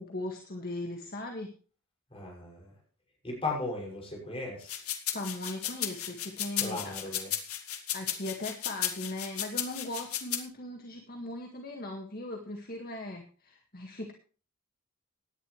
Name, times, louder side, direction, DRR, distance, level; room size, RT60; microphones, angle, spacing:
voice 1, 0.0-1.5 5.1-7.2 7.9-14.1, left 1 dB, 45° left, 3 dB, 1.9 m, -39 dB
voice 2, 2.1-2.7 3.2-4.8 6.6-7.3, left 2 dB, 25° left, -1 dB, 6.5 m, -37 dB
sound 1, 4.6-10.4, left 10 dB, 80° left, 2.3 m, -34 dB
18.0 x 11.0 x 3.3 m, 0.38 s
head